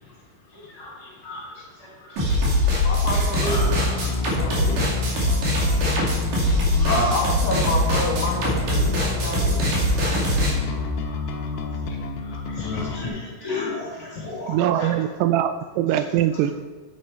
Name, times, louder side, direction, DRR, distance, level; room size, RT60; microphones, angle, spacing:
voice 1, 0.5-4.3 6.8-7.1 10.8-14.9, left 1 dB, 25° left, -6 dB, 3.2 m, -33 dB
sound 1, 2.2-11.1, left 3 dB, 10° right, 3.4 m, -31 dB
sound 2, 2.2-10.5, equal, 55° right, 3.5 m, -22 dB
voice 2, 2.8-3.8 4.1-4.9 7.1-9.8, left 2 dB, 65° left, -2 dB, 2.5 m, -29 dB
Bass guitar, 3.5-13.1, left 4 dB, 85° left, 1.8 m, -31 dB
voice 3, 14.5-16.5, right 11 dB, 85° right, 10 dB, 2.6 m, -22 dB
11.0 x 8.3 x 4.5 m, 1.4 s
omnidirectional pair, 4.8 m